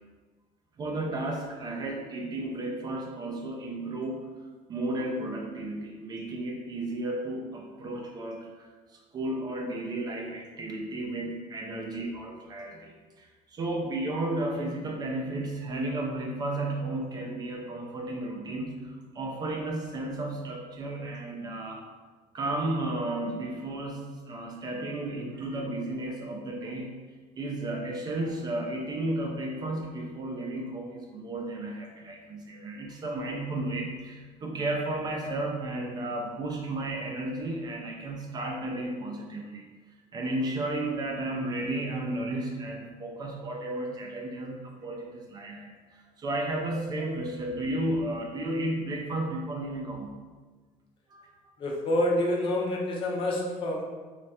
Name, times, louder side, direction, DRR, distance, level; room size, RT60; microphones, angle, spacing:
voice 1, 0.8-21.9 22.3-27.0 27.4-39.7 40.1-50.2 51.1-51.3, right 1 dB, 30° right, 0 dB, 0.4 m, -33 dB
voice 2, 51.6-53.8, left 1 dB, 35° left, -1 dB, 0.6 m, -27 dB
3.2 x 2.4 x 4.1 m, 1.4 s
cardioid pair, 175°, 15 cm